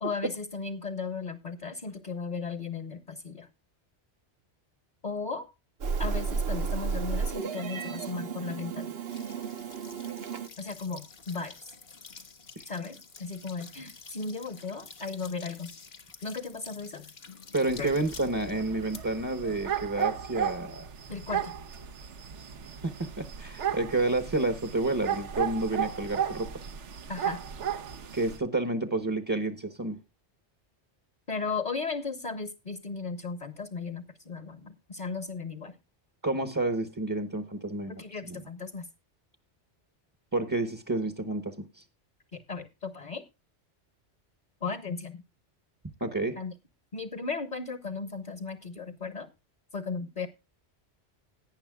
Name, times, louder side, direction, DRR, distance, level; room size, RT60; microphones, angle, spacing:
voice 1, 0.0-3.5 5.0-5.5 6.0-8.9 10.6-11.5 12.7-15.7 16.2-17.0 17.8-17.9 21.1-21.5 27.1-27.4 31.3-35.8 37.9-38.9 42.3-43.2 44.6-45.2 46.4-46.5 46.9-49.3 49.7-50.3, left 4 dB, 40° left, 1.1 m, -36 dB
Meow, 5.8-10.5, right 5 dB, 60° right, 1.0 m, -33 dB
sound 1, 9.1-20.7, left 5 dB, 60° left, 1.4 m, -50 dB
voice 2, 17.5-20.9 22.8-26.5 28.1-30.0 36.2-38.0 38.3-38.4 40.3-41.8 46.0-46.4, right 2 dB, 20° right, 0.8 m, -30 dB
sound 2, 17.7-28.4, right 9 dB, 80° right, 1.2 m, -35 dB
17.5 x 9.8 x 2.3 m
omnidirectional pair, 1.2 m